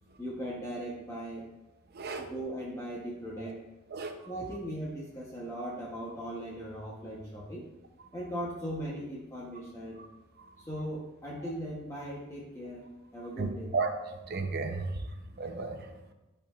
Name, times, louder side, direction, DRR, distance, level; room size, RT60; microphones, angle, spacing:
voice 1, 0.2-1.4 2.2-3.6 4.3-7.7 8.1-10.0 10.6-12.8 13.1-13.7 15.2-15.4, equal, 15° left, -5 dB, 0.9 m, -38 dB
voice 2, 1.9-2.3 3.9-4.1 13.4-13.9 14.3-14.9 15.4-15.8, right 4 dB, 50° right, 5 dB, 0.7 m, -33 dB
12.0 x 4.5 x 2.4 m, 1.0 s
head